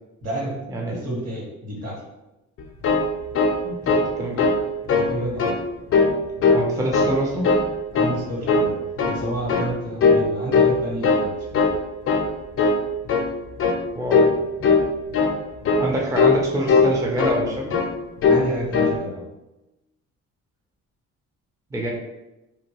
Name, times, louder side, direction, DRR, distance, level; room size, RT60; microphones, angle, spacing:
voice 1, 0.2-0.6 0.9-2.0 4.9-5.5 7.9-11.7 18.2-19.2, right 1 dB, 55° right, -4 dB, 1.4 m, -30 dB
sound 1, 2.6-4.1 4.4-4.6 4.9-5.6 5.9-6.7 6.9-7.7 7.9-8.2 8.5-9.2 9.5-9.7 10.0-10.3 10.5-11.3 11.5-11.8 12.1-12.3 12.6-12.8 13.1-13.3 13.6-13.8 14.1-14.4 14.6-14.9 15.1-15.4 15.6-15.9 16.2-16.4 16.7-17.4 17.7-17.9 18.2-18.5 18.7-19.0, left 4 dB, 45° left, 0.4 m, -19 dB
voice 2, 3.6-4.5 6.5-7.5 14.0-14.3 15.8-17.7 21.7-21.9, equal, 10° right, -2 dB, 0.4 m, -26 dB
2.7 x 2.2 x 2.9 m, 0.97 s
cardioid pair, 90°, 30 cm